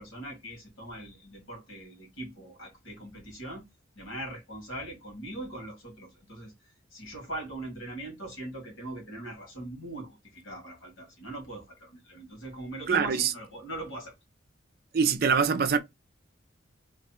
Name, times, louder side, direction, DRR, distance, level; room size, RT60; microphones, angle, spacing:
voice 1, 0.0-3.7 4.0-14.1, right 1 dB, 75° left, 1.8 m, -41 dB
voice 2, 12.9-13.3 14.9-15.8, right 6 dB, 50° right, 0.4 m, -24 dB
3.2 x 2.3 x 4.2 m
head